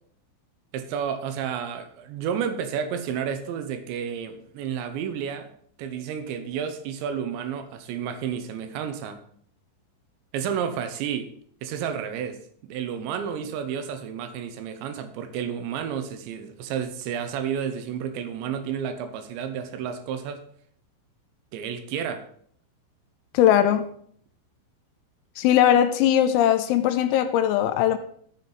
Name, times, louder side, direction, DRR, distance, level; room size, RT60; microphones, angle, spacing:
voice 1, 0.7-5.5 5.8-9.2 10.3-11.3 11.6-20.4 21.5-22.3, right 8 dB, 75° right, 8 dB, 2.8 m, -31 dB
voice 2, 23.3-23.9 25.4-28.0, left 11 dB, 85° left, 9 dB, 3.0 m, -20 dB
13.0 x 7.2 x 4.0 m, 0.62 s
omnidirectional pair, 5.8 m